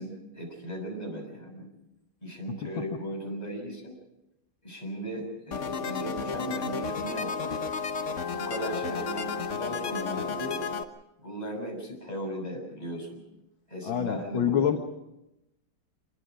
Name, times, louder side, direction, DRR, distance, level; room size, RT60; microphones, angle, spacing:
voice 1, 0.0-1.7 2.2-4.0 4.6-7.6 8.3-10.6 11.2-13.2 13.7-14.8, equal, 20° left, 0 dB, 6.9 m, -37 dB
sound 1, 5.5-10.8, left 5 dB, 45° left, 1.3 m, -32 dB
voice 2, 13.8-14.8, left 8 dB, 80° left, 4 dB, 2.0 m, -26 dB
25.5 x 22.0 x 5.1 m, 0.91 s
omnidirectional pair, 2.1 m